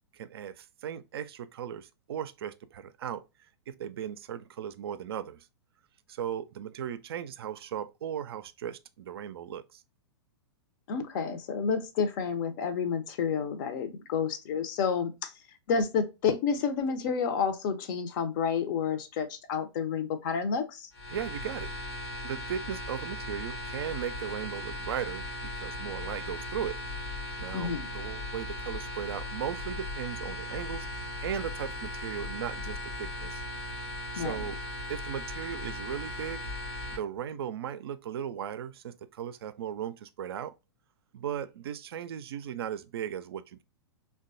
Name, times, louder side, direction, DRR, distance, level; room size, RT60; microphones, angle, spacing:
voice 1, 0.1-3.2 3.7-5.5 6.1-9.8 21.1-21.7 22.2-26.8 27.4-30.9 31.2-33.4 34.1-34.6 34.9-36.4 36.9-40.5 41.1-43.6, right 9 dB, 60° right, 0.4 m, -37 dB
voice 2, 10.9-15.3 15.7-20.9 27.5-27.8 34.2-34.4, left 6 dB, 50° left, 0.6 m, -30 dB
sound 1, 20.9-37.0, left 1 dB, 70° left, 1.0 m, -38 dB
3.2 x 2.2 x 2.5 m
figure-of-eight pair, 105°, 14 cm